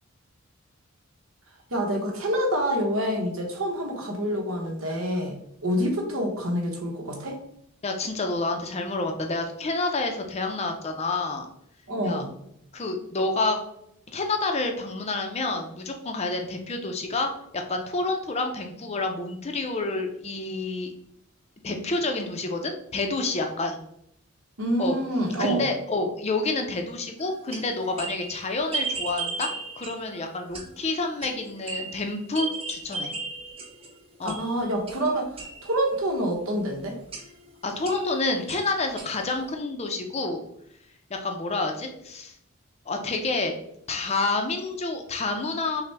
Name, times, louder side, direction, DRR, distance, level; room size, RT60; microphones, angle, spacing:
voice 1, 1.7-5.3 5.6-7.4 11.9-12.3 24.6-25.7 34.2-35.3 35.6-37.0, equal, 75° right, 2 dB, 1.0 m, -27 dB
voice 2, 7.8-11.5 12.0-12.2 12.7-13.6 14.1-20.9 21.6-23.8 24.8-25.0 25.4-29.5 29.8-33.1 34.2-34.4 37.6-40.4 41.1-42.3 42.9-43.6 43.9-45.8, left 3 dB, 30° left, 4 dB, 0.5 m, -28 dB
sound 1, 27.2-33.9 34.3-35.9 37.1-37.5 37.8-39.5, right 4 dB, 25° right, 0.7 m, -36 dB
5.7 x 2.2 x 3.3 m, 0.74 s
head